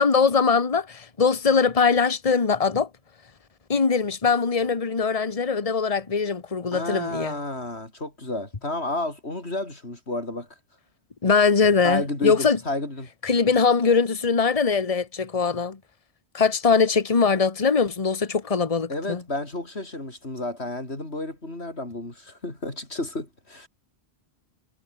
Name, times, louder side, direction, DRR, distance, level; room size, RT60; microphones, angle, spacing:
voice 1, 0.0-2.9 3.7-7.3 11.2-12.6 13.2-15.8 16.3-19.2, left 5 dB, 35° left, 1.4 m, -21 dB
voice 2, 6.7-10.5 11.8-13.1 18.9-23.7, left 2 dB, 75° left, 5.8 m, -31 dB
omnidirectional pair, 1.1 m